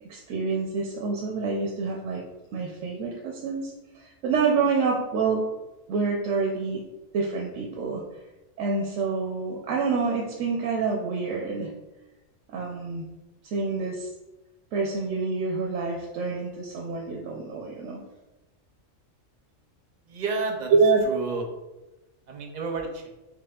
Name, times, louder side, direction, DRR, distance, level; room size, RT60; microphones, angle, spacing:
voice 1, 0.0-2.2 2.5-5.4 5.9-6.8 7.1-8.0 8.6-11.7 12.5-13.0 13.4-14.1 14.7-18.0 20.7-21.0, right 4 dB, 80° right, -1 dB, 1.0 m, -27 dB
voice 2, 20.1-20.7 21.0-21.4 22.3-23.1, right 4 dB, 50° right, 3 dB, 0.5 m, -31 dB
5.8 x 3.2 x 2.3 m, 1.0 s
omnidirectional pair, 1.3 m